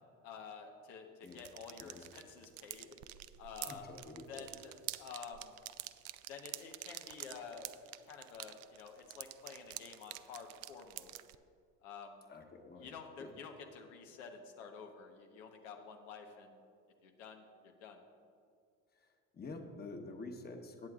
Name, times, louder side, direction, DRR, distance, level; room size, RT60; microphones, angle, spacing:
voice 1, 0.2-3.0 3.4-5.5 6.3-11.1 11.8-12.2 12.7-16.6 17.0-18.0, left 5 dB, 90° left, 3 dB, 1.1 m, -50 dB
sound 1, 1.2-11.3, right 16 dB, 65° right, 0.5 m, -48 dB
voice 2, 3.7-4.5 12.3-13.3 19.0-19.1 19.3-20.9, left 3 dB, 25° left, 4 dB, 1.1 m, -48 dB
19.5 x 7.7 x 2.4 m, 2.4 s
supercardioid pair, 95°, 37 cm